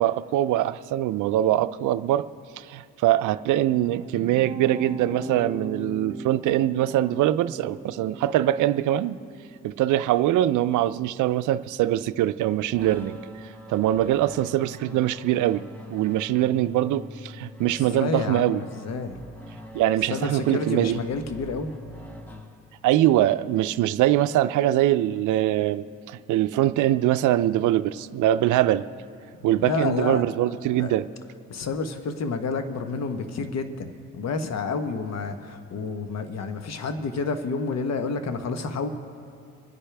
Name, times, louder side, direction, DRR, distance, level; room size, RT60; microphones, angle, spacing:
voice 1, 0.0-2.3 2.6-9.2 9.6-13.2 13.7-15.6 15.9-18.6 19.7-21.0 22.8-28.8 29.4-31.1, right 13 dB, 80° right, 13 dB, 0.5 m, -23 dB
sound 1, 3.6-12.3, right 2 dB, 20° right, 2.1 m, -40 dB
sound 2, 12.7-23.0, equal, 5° left, 1.2 m, -43 dB
voice 2, 17.9-19.2 20.1-21.7 29.5-30.2 30.8-30.9 31.5-38.9, left 4 dB, 60° left, 8 dB, 1.2 m, -29 dB
25.5 x 10.0 x 3.4 m, 2.5 s
cardioid pair, 90°, 30 cm